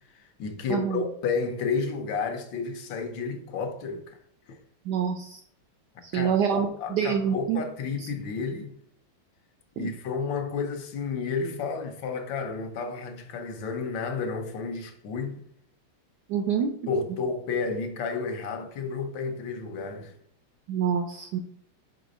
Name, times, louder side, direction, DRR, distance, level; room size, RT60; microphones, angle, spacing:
voice 1, 0.1-4.2 4.5-4.6 5.9-8.8 9.8-15.4 16.9-20.1, left 4 dB, 70° left, 1.4 m, -31 dB
voice 2, 0.7-1.0 4.9-5.4 6.0-7.6 9.8-9.9 16.3-16.7 20.7-21.4, right 7 dB, 75° right, 0.9 m, -26 dB
4.6 x 4.0 x 5.1 m
omnidirectional pair, 2.3 m